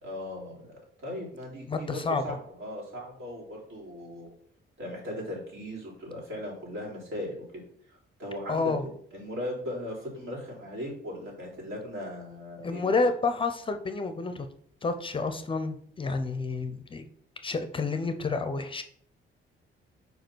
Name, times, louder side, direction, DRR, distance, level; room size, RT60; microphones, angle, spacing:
voice 1, 0.0-4.3 4.8-7.4 7.9-13.0, left 1 dB, 75° right, -3 dB, 3.4 m, -38 dB
voice 2, 1.7-2.4 8.5-8.8 12.6-14.5 14.8-17.1 17.4-18.8, left 3 dB, 25° left, 9 dB, 0.5 m, -29 dB
5.3 x 4.7 x 6.1 m, 0.62 s
cardioid pair, 160°, 21 cm